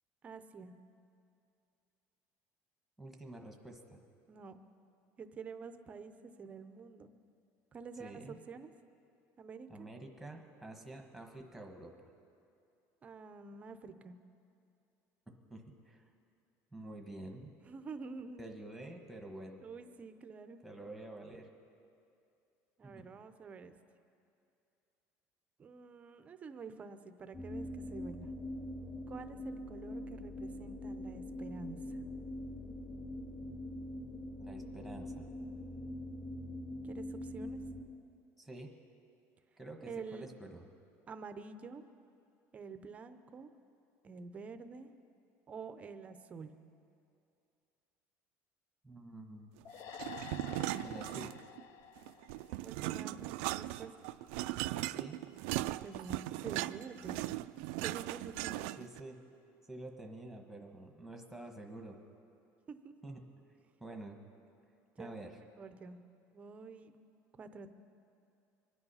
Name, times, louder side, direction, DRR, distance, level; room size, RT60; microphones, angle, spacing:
voice 1, 0.2-0.7 4.3-4.6 5.2-7.1 7.7-8.7 9.4-9.9 13.0-14.2 17.6-18.4 19.6-20.6 22.8-23.7 25.6-28.3 29.1-32.0 36.8-37.6 39.8-40.3 41.1-41.8 42.5-43.5 44.0-44.9 45.5-46.5 52.6-53.9 55.8-57.4 57.8-58.7 62.7-62.9 65.0-65.2 65.6-66.0 66.3-66.9 67.4-67.7, right 4 dB, 20° right, 9 dB, 0.6 m, -48 dB
voice 2, 3.0-4.0 8.0-8.4 9.7-12.1 15.5-16.0 16.7-17.5 18.4-19.6 20.6-21.5 22.8-23.1 34.4-35.3 38.4-38.7 39.6-40.7 48.8-49.5 50.8-51.3 54.9-55.2 58.5-59.2 59.6-62.0 63.0-63.2 63.8-64.2 65.0-65.4, right 2 dB, ahead, 2 dB, 1.2 m, -48 dB
sound 1, 27.3-37.8, left 1 dB, 25° left, 3.3 m, -43 dB
sound 2, 49.7-53.1, left 8 dB, 45° left, 0.6 m, -49 dB
sound 3, 49.9-51.6 52.0-59.0, right 17 dB, 90° right, 0.4 m, -38 dB
25.0 x 9.6 x 5.6 m, 2.6 s
cardioid pair, 175°, 7 cm